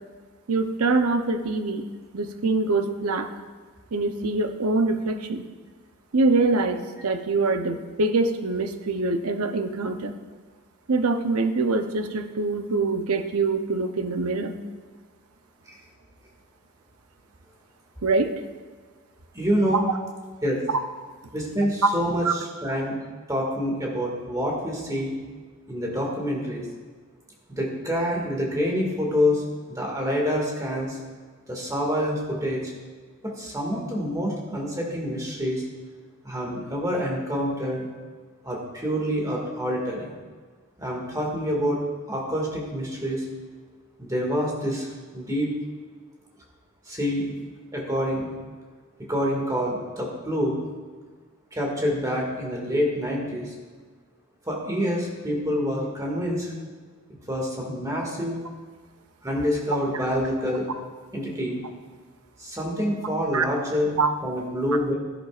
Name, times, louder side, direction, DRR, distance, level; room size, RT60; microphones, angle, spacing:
voice 1, 0.5-1.9 2.1-3.3 3.9-5.5 6.1-10.1 10.9-14.6 18.0-18.3 19.7-19.8 20.7-20.8 22.2-22.3 63.3-63.4 64.0-64.1, right 3 dB, 90° right, 8 dB, 0.8 m, -24 dB
voice 2, 19.3-19.9 20.4-20.6 21.3-23.0 23.3-25.1 25.7-26.6 27.5-29.4 29.7-31.0 31.5-32.7 33.2-35.6 36.2-37.9 38.4-40.1 40.8-41.8 42.1-43.3 44.0-44.9 45.1-45.5 46.9-47.3 47.7-48.3 49.1-50.5 51.5-53.5 54.5-56.5 57.3-58.4 59.2-60.7 61.1-61.6 62.4-64.9, equal, 15° right, -2 dB, 2.0 m, -27 dB
13.0 x 11.0 x 2.5 m, 1.5 s
head